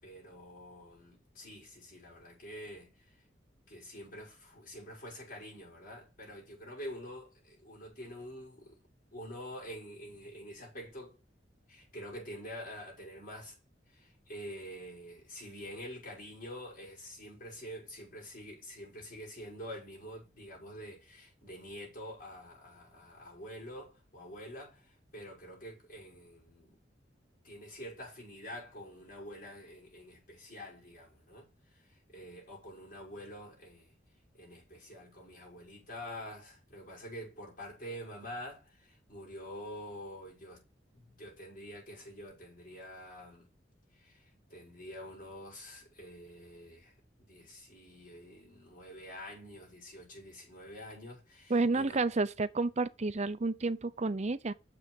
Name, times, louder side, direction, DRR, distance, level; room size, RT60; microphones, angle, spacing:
voice 1, 0.0-3.2 3.7-8.8 9.1-11.2 11.7-13.6 13.9-26.8 27.4-31.5 31.7-33.9 34.3-40.6 40.9-43.5 43.9-52.0, equal, 50° left, 6.1 m, -47 dB
voice 2, 51.5-54.5, right 3 dB, 40° right, 0.6 m, -30 dB
7.0 x 6.1 x 6.3 m
head